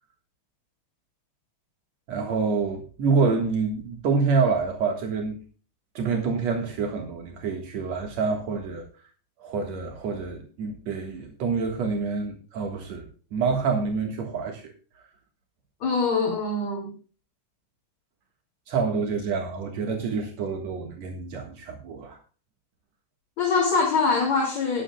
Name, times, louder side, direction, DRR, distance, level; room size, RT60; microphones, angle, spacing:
voice 1, 2.1-5.4 5.9-8.9 9.4-14.7 18.7-22.2, right 4 dB, 60° right, 3 dB, 1.9 m, -27 dB
voice 2, 15.8-16.9 23.4-24.8, left 4 dB, 40° left, -1 dB, 3.7 m, -23 dB
19.5 x 8.9 x 2.3 m, 0.38 s
omnidirectional pair, 5.3 m